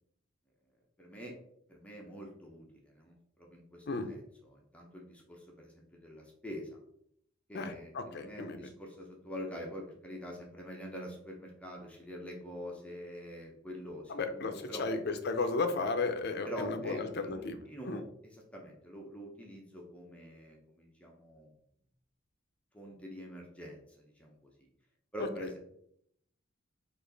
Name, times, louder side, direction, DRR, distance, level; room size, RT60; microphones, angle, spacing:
voice 1, 1.0-1.4 1.7-6.8 7.5-14.9 16.4-21.5 22.7-24.7 25.1-25.6, equal, 5° left, -1 dB, 0.7 m, -45 dB
voice 2, 7.5-8.6 14.1-17.6 17.9-18.0, left 3 dB, 50° left, 8 dB, 0.6 m, -34 dB
5.0 x 2.6 x 3.9 m, 0.70 s
head